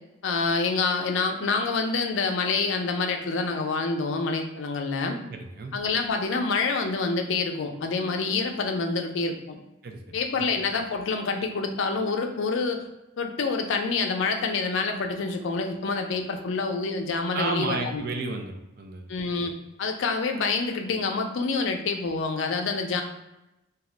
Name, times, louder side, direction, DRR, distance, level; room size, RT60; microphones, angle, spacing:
voice 1, 0.2-5.2 5.7-9.6 10.1-12.8 13.2-18.0 19.1-19.5 19.8-23.0, left 4 dB, 70° left, 4 dB, 0.4 m, -27 dB
voice 2, 5.3-5.7 9.8-10.0 10.4-10.5 17.3-19.1, right 3 dB, 50° right, 4 dB, 0.3 m, -32 dB
2.3 x 2.1 x 3.7 m, 0.93 s
head